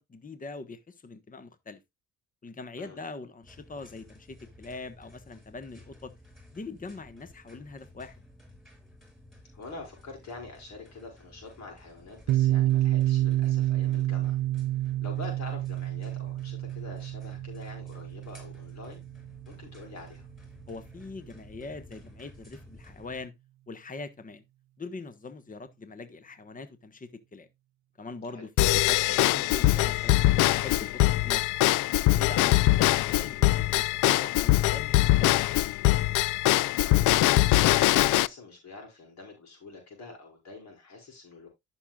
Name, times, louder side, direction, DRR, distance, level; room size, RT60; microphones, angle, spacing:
voice 1, 0.1-1.8 2.4-6.1 6.5-8.2 20.7-23.3 23.7-24.4 24.8-27.5 28.0-30.2 30.5-31.5 32.1-35.6, left 3 dB, 25° left, 1.2 m, -42 dB
sound 1, 3.4-23.2, left 1 dB, ahead, 5.2 m, -54 dB
voice 2, 9.5-14.4 14.8-19.0 19.5-20.3 28.3-28.5 36.8-41.5, left 3 dB, 65° left, 5.5 m, -46 dB
Piano, 12.3-19.7, right 14 dB, 65° right, 0.6 m, -28 dB
Drum kit / Drum / Bell, 28.6-38.3, left 16 dB, 85° left, 0.5 m, -22 dB
14.0 x 6.3 x 2.4 m
cardioid pair, 90°, 30 cm